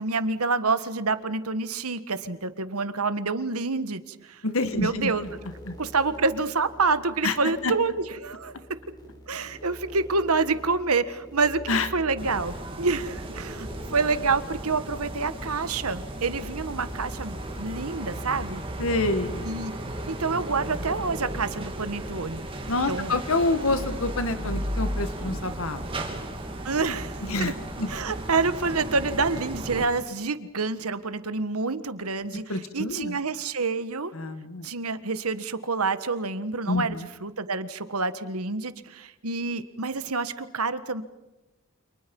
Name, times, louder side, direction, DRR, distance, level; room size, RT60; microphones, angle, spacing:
voice 1, 0.0-4.4 4.7-5.2 5.8-8.5 9.3-11.6 11.9-18.6 19.4-19.7 20.1-22.5 22.9-23.1 26.6-27.5 27.9-32.4 32.7-34.1 34.6-41.0, right 4 dB, 90° right, 12 dB, 1.6 m, -27 dB
voice 2, 4.4-5.3 5.7-5.8 7.2-7.7 11.7-11.9 18.8-19.5 22.7-26.1 27.2-27.9 32.3-33.2 34.1-34.7 36.7-37.1, left 2 dB, 70° left, 10 dB, 1.8 m, -27 dB
sound 1, 4.6-24.2, equal, 20° left, 5.6 m, -46 dB
sound 2, 12.2-29.9, right 1 dB, 25° right, 3.3 m, -35 dB
29.5 x 28.0 x 5.5 m, 1.0 s
head